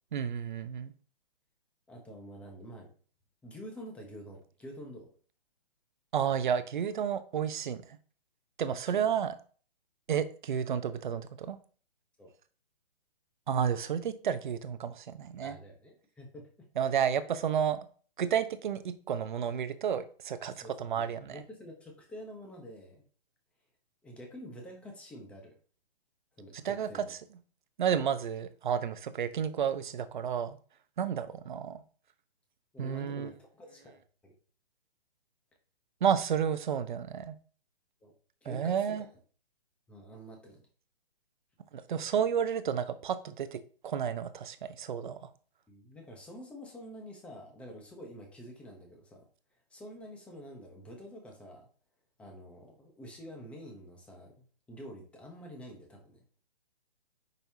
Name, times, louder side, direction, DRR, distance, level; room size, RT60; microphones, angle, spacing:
voice 1, 0.1-0.9 6.1-8.0 8.6-9.3 10.1-11.6 13.5-15.6 16.8-17.8 18.2-21.4 26.5-27.0 27.8-30.6 31.0-31.8 32.8-33.3 36.0-37.3 38.4-39.0 41.7-45.3, right 8 dB, 50° right, 0.9 m, -31 dB
voice 2, 1.9-2.9 3.4-5.1 8.9-9.1 12.2-12.3 15.4-16.4 20.4-23.0 24.0-25.5 26.4-27.1 32.7-34.3 38.0-38.1 38.4-39.0 39.9-40.6 45.7-49.3 49.7-51.7 52.2-56.2, equal, 5° left, 0.9 m, -48 dB
9.2 x 5.5 x 2.8 m
hypercardioid pair, 160°, 30 cm